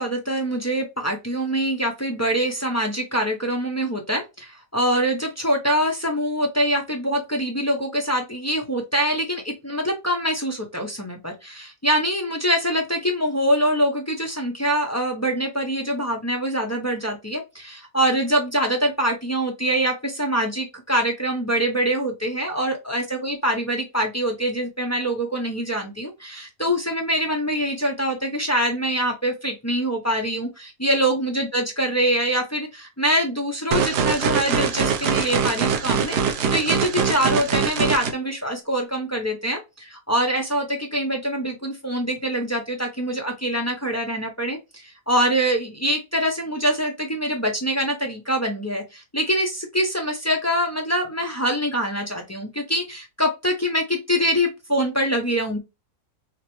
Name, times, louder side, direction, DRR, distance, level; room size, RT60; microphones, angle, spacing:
voice 1, 0.0-55.6, equal, 20° left, 2 dB, 0.4 m, -24 dB
sound 1, 33.7-38.1, right 6 dB, 80° right, 1.4 m, -23 dB
6.3 x 2.1 x 3.1 m, 0.24 s
omnidirectional pair, 1.7 m